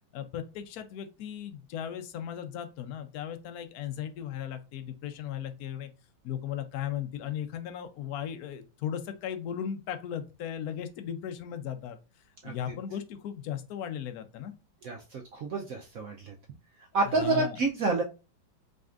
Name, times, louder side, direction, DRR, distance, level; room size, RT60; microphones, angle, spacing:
voice 1, 0.1-5.9 6.2-12.0 12.4-14.5 17.1-17.6, left 9 dB, 65° left, 8 dB, 0.9 m, -36 dB
voice 2, 14.8-16.3 16.9-18.0, right 3 dB, 75° right, 1 dB, 0.8 m, -29 dB
5.1 x 3.2 x 2.4 m, 0.31 s
omnidirectional pair, 2.2 m